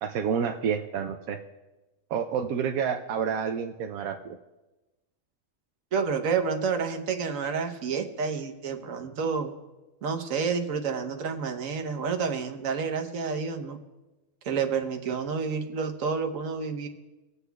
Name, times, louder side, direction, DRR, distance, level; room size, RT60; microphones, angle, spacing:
voice 1, 0.0-1.4 2.1-4.4, right 7 dB, 90° right, 4 dB, 1.0 m, -29 dB
voice 2, 5.9-9.5 10.0-13.8 14.4-16.9, right 5 dB, 70° right, 5 dB, 1.3 m, -29 dB
20.5 x 8.1 x 2.3 m, 1.1 s
omnidirectional pair, 1.4 m